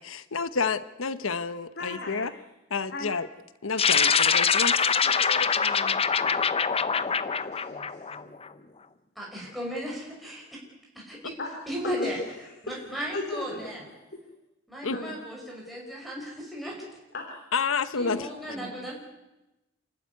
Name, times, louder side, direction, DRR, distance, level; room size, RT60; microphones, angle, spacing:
voice 1, 0.0-2.3 2.7-3.3 3.6-4.8 5.3-5.5 14.8-15.0 17.5-18.3, left 5 dB, 85° left, 14 dB, 1.0 m, -29 dB
voice 2, 1.8-2.3 2.9-3.1 5.0-8.3 11.4-11.5 11.8-11.9 12.7-12.8 13.1-13.7 14.1-14.2 14.9-15.1 17.1-17.4 18.0-18.7, left 2 dB, 55° left, 2 dB, 3.3 m, -39 dB
sound 1, 3.8-8.5, left 6 dB, 30° left, 0.8 m, -24 dB
voice 3, 9.2-10.4 11.1-11.3 11.7-12.2 12.6-13.8 14.7-16.8 18.0-19.0, equal, ahead, -3 dB, 5.6 m, -35 dB
29.0 x 12.5 x 9.5 m, 0.99 s
head